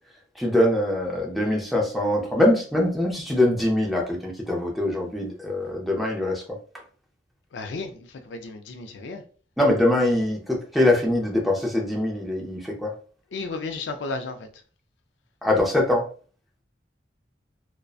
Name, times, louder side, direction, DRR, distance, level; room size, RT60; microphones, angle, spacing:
voice 1, 0.4-6.6 9.6-12.9 15.4-16.1, left 1 dB, ahead, 0.5 m, -23 dB
voice 2, 7.5-9.2 13.3-14.5, left 3 dB, 75° left, 0.4 m, -33 dB
2.5 x 2.1 x 2.3 m
head